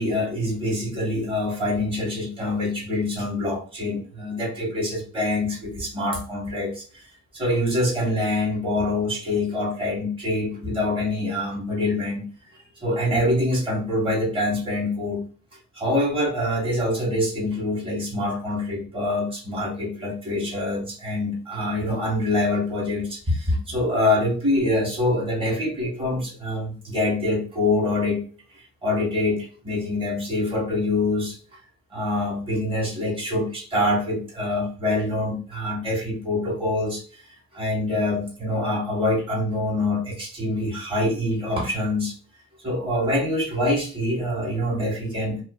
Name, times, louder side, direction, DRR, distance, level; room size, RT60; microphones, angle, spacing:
voice 1, 0.0-7.1 7.3-12.2 12.7-15.2 15.7-28.2 28.8-31.4 31.9-37.0 37.5-42.1 42.6-45.4, left 1 dB, 15° right, -4 dB, 1.1 m, -25 dB
2.4 x 2.4 x 2.3 m, 0.40 s
cardioid pair, 125°, 32 cm